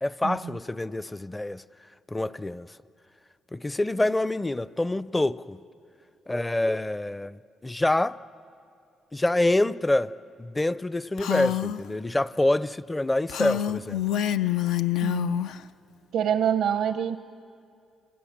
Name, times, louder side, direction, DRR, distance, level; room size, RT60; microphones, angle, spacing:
voice 1, 0.0-1.6 2.1-2.7 3.5-5.6 6.3-8.2 9.1-10.1 10.4-14.1, left 1 dB, 15° left, 0.5 m, -26 dB
Female speech woman speaking, 11.2-11.8 13.3-15.6, left 12 dB, 85° left, 0.5 m, -27 dB
voice 2, 15.0-15.4 16.1-17.2, right 8 dB, 80° right, 0.7 m, -26 dB
28.0 x 27.0 x 7.3 m
cardioid pair, 90°, 0 cm